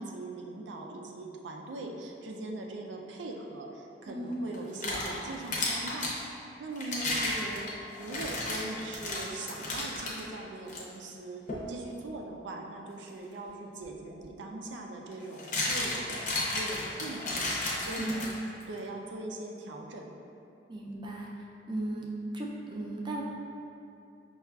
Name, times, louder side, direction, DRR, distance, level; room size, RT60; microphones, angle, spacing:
voice 1, 0.0-6.1 6.6-7.7 8.0-11.4 11.7-18.3 18.7-20.1, right 2 dB, 90° right, 1 dB, 0.4 m, -41 dB
voice 2, 4.1-4.4 18.0-18.2 20.7-21.3 21.7-22.1 22.3-23.2, right 1 dB, 25° right, -1 dB, 0.4 m, -35 dB
sound 1, 4.5-6.2 6.8-10.2 10.7-10.8 11.5-11.7 13.8-13.9 15.1-18.6, left 2 dB, 45° left, 0.6 m, -33 dB
5.5 x 2.3 x 2.3 m, 2.7 s
head